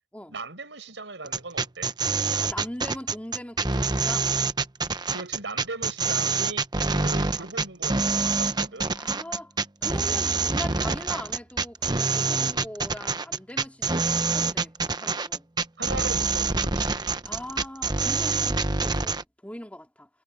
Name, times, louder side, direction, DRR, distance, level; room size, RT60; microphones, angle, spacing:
voice 1, 0.3-1.9 5.1-6.6 7.0-9.0 15.8-17.1, right 3 dB, 85° right, 5.4 m, -38 dB
sound 1, 1.3-19.2, right 4 dB, 25° right, 0.9 m, -26 dB
voice 2, 2.4-4.3 6.9-7.1 8.9-9.5 9.8-15.5 17.2-20.1, left 1 dB, 10° left, 2.4 m, -40 dB
head